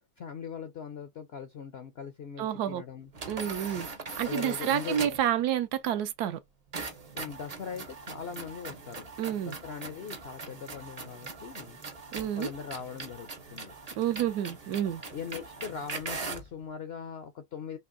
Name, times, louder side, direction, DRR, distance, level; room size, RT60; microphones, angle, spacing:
voice 1, 0.2-3.1 4.2-5.2 7.1-9.1 9.4-11.8 12.3-13.7 15.1-17.8, left 7 dB, 70° left, 0.6 m, -40 dB
voice 2, 2.4-2.8 3.3-3.9 4.2-6.4 9.2-9.6 12.1-12.5 14.0-15.0, right 10 dB, 85° right, 1.2 m, -29 dB
sound 1, 3.1-5.3 6.7-16.5, right 4 dB, 45° right, 0.5 m, -41 dB
4.4 x 2.9 x 2.5 m
omnidirectional pair, 1.7 m